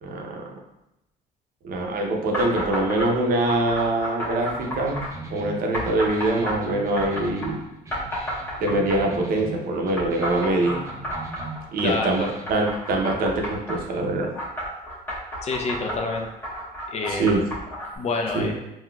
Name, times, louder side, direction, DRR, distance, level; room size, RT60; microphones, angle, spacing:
voice 1, 0.0-0.6 1.6-5.0 5.3-7.6 8.6-10.9 11.7-14.3 17.1-17.4 18.3-18.5, right 2 dB, 60° right, 1 dB, 0.6 m, -24 dB
sound 1, 2.3-3.1 3.4-5.1 5.7-7.5 7.9-9.2 10.0-13.8 14.3-18.0, equal, 15° left, 1.1 m, -31 dB
sound 2, 4.6-12.6, right 2 dB, 20° right, 0.5 m, -40 dB
voice 2, 11.8-12.3 15.4-16.3 16.9-17.2 18.0-18.6, left 3 dB, 40° left, 2 dB, 0.4 m, -27 dB
3.8 x 2.3 x 2.2 m, 0.91 s
cardioid pair, 110°, 17 cm